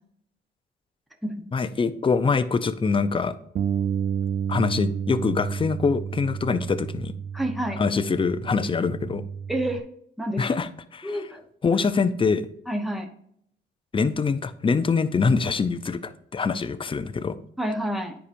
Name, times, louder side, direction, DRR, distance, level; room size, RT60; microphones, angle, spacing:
voice 1, 1.5-3.3 4.5-7.1 7.8-9.3 10.4-11.3 11.6-12.5 13.9-17.4, left 5 dB, 25° left, 13 dB, 0.6 m, -24 dB
Bass guitar, 3.6-9.8, right 7 dB, 40° right, 0.4 m, -31 dB
voice 2, 7.3-7.8 9.5-9.8 10.2-10.5 11.0-11.4 12.7-13.1 17.6-18.2, right 1 dB, ahead, 4 dB, 1.0 m, -28 dB
9.9 x 4.9 x 2.6 m, 0.69 s
cardioid pair, 90°, 20 cm